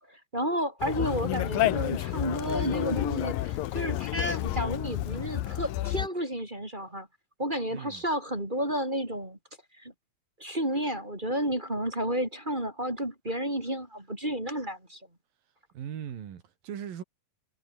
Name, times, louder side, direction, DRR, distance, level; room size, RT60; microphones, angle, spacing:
voice 1, 0.1-7.1 7.4-9.4 9.8-9.9 10.4-15.0, equal, 15° right, 4.0 m, -31 dB
Conversation, 0.8-6.1, left 14 dB, 90° left, 2.8 m, -30 dB
voice 2, 7.7-8.0 15.7-17.0, right 9 dB, 80° right, 4.1 m, -39 dB
omnidirectional pair, 4.0 m